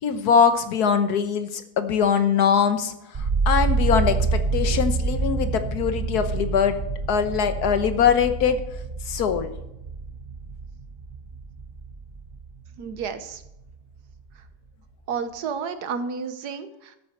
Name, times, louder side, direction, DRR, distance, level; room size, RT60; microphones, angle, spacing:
voice 1, 0.0-6.8 7.1-8.6 9.1-9.5, left 7 dB, 75° left, 10 dB, 1.5 m, -22 dB
sound 1, 3.1-13.1 13.4-14.1, right 4 dB, 40° right, 1.5 m, -27 dB
voice 2, 12.8-13.4 15.1-17.0, right 6 dB, 75° right, 10 dB, 1.5 m, -31 dB
12.5 x 8.8 x 4.4 m, 0.89 s
omnidirectional pair, 1.7 m